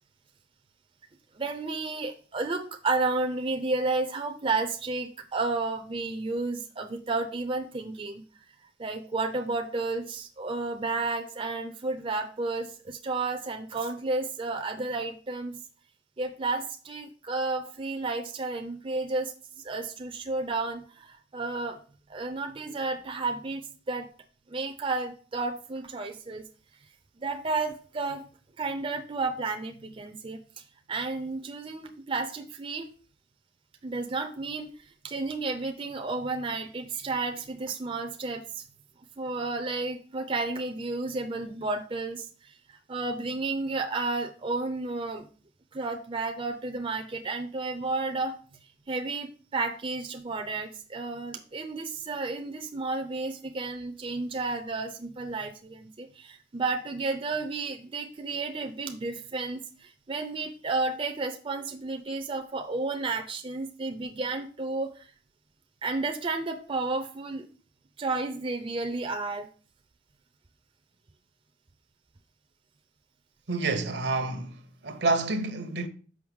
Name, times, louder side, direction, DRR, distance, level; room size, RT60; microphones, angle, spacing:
voice 1, 1.4-8.2 8.8-15.6 16.2-19.3 19.6-21.8 22.1-24.1 24.5-26.4 27.2-28.2 28.6-30.4 30.9-32.9 33.8-34.7 35.0-38.6 39.2-42.3 42.9-45.3 45.7-48.4 48.9-65.1 65.8-67.5 68.0-69.5, right 3 dB, 30° right, 0.5 m, -32 dB
voice 2, 73.5-75.9, right 3 dB, 70° right, 0.9 m, -28 dB
6.2 x 5.3 x 3.5 m
head